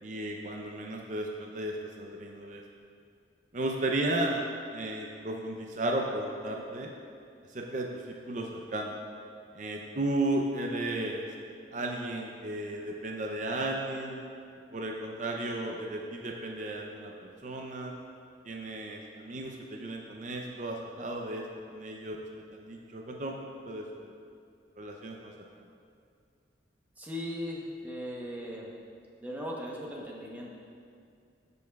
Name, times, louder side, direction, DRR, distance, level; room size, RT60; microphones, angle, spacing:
voice 1, 0.0-2.6 3.5-4.4 4.7-6.9 7.5-9.0 9.5-11.2 11.7-14.2 14.7-17.9 18.4-21.4 21.7-22.2 22.5-23.3 23.7-24.1 24.8-25.3, right 1 dB, 45° right, 0 dB, 0.5 m, -34 dB
voice 2, 27.0-28.7 29.2-30.6, equal, 10° right, -3 dB, 0.9 m, -38 dB
15.5 x 5.4 x 2.3 m, 2.4 s
head